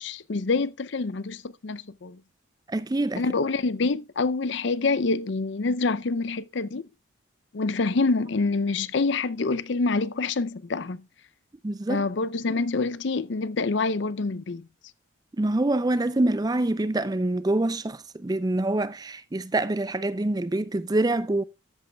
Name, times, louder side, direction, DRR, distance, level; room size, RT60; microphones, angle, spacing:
voice 1, 0.0-2.2 3.2-6.8 7.5-11.0 11.9-14.7, left 3 dB, 60° left, 0.5 m, -26 dB
voice 2, 2.7-3.2 11.6-12.0 15.4-21.4, right 2 dB, 20° right, 0.4 m, -25 dB
13.5 x 8.3 x 2.3 m
head